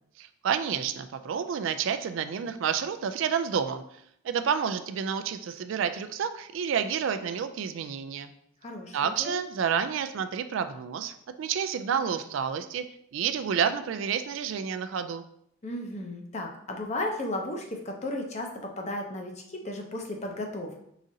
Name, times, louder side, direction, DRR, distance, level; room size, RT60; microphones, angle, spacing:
voice 1, 0.2-3.8 4.2-8.3 8.9-12.8 13.1-15.2, right 7 dB, 65° right, 10 dB, 0.3 m, -29 dB
voice 2, 8.6-9.4 15.6-20.8, left 1 dB, 30° left, 2 dB, 0.6 m, -34 dB
4.9 x 3.8 x 2.7 m, 0.71 s
head